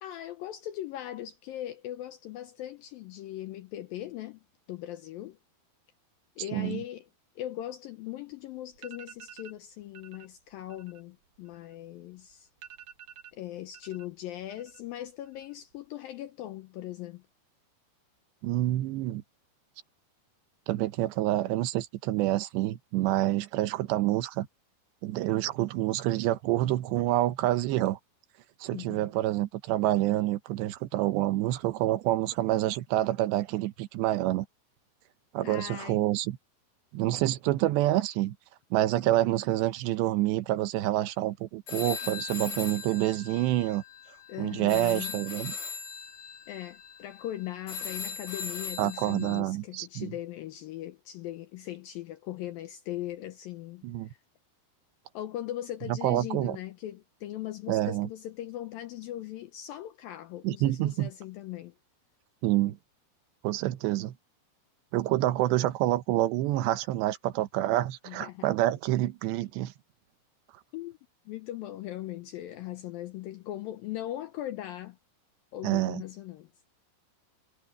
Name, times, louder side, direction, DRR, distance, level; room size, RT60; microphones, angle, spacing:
voice 1, 0.0-4.4 4.7-5.4 6.4-7.1 7.4-12.5 13.3-17.2 28.7-29.1 35.4-36.1 44.3-45.1 46.5-54.2 55.1-61.7 68.1-68.5 70.7-71.0 71.3-75.0 75.5-76.5, left 13 dB, 80° left, 2.2 m, -39 dB
sound 1, 8.3-8.4 8.7-9.6 9.9-10.3 10.6-12.0 12.3-12.4 12.6-14.1 14.4-15.0 15.2-15.8, right 9 dB, 60° right, 3.1 m, -50 dB
voice 2, 18.4-19.2 20.7-24.5 25.0-28.0 28.6-34.5 35.3-36.4 36.9-38.4 38.7-43.8 44.4-45.5 48.8-50.1 53.8-54.1 55.9-56.6 57.7-58.1 60.4-61.1 62.4-62.8 63.4-64.1 64.9-69.7 75.6-76.0, right 15 dB, 85° right, 3.2 m, -27 dB
sound 2, 41.7-49.4, left 5 dB, 60° left, 4.5 m, -39 dB
omnidirectional pair, 4.9 m